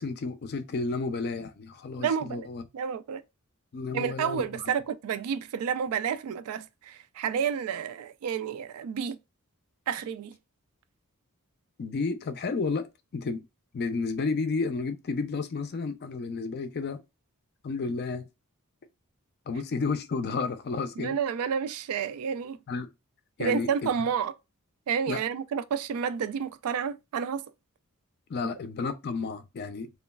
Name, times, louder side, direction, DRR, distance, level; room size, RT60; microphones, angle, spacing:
voice 1, 0.0-2.6 3.7-4.7 11.8-13.5 13.7-17.0 17.6-18.2 19.5-21.2 22.7-22.9 23.4-24.1 25.1-25.2 28.3-29.9, left 4 dB, 45° left, 0.4 m, -32 dB
voice 2, 2.0-2.5 2.7-3.2 3.9-9.2 9.9-10.4 21.0-22.6 23.4-24.3 24.9-27.4, right 7 dB, 80° right, 0.3 m, -30 dB
3.0 x 2.3 x 2.2 m
head